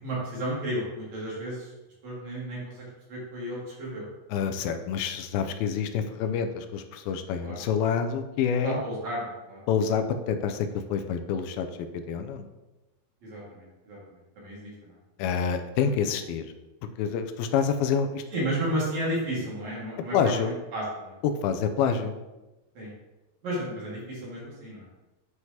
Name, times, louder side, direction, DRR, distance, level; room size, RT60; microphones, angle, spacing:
voice 1, 0.0-1.7 2.0-4.0 7.4-7.6 8.6-9.6 13.2-15.0 15.3-15.4 16.0-16.1 18.3-21.2 22.7-22.9 23.4-24.9, right 1 dB, 55° right, -6 dB, 3.1 m, -33 dB
voice 2, 4.3-8.8 9.7-11.7 12.1-12.5 15.2-16.5 17.0-18.2 20.1-20.5 21.2-22.2, left 7 dB, 90° left, 7 dB, 2.5 m, -27 dB
9.7 x 4.7 x 2.8 m, 1.0 s
omnidirectional pair, 4.2 m